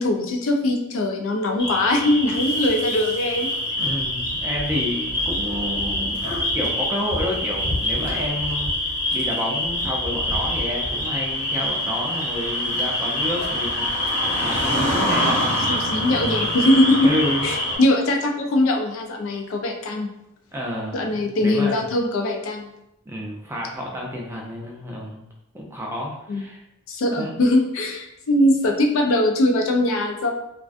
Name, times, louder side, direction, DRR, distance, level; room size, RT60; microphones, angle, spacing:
voice 1, 0.0-3.5 15.7-20.1 20.9-22.7 26.3-26.4 26.9-30.3, left 1 dB, 65° left, 3 dB, 0.4 m, -21 dB
sound 1, 1.6-17.8, left 1 dB, 50° left, 1.0 m, -25 dB
voice 2, 3.8-6.3 6.5-8.7 9.1-16.2 17.0-17.5 20.5-21.8 23.1-25.3 25.5-26.6 27.1-27.4, left 1 dB, 10° right, -2 dB, 0.4 m, -30 dB
2.4 x 2.2 x 2.4 m, 0.82 s
head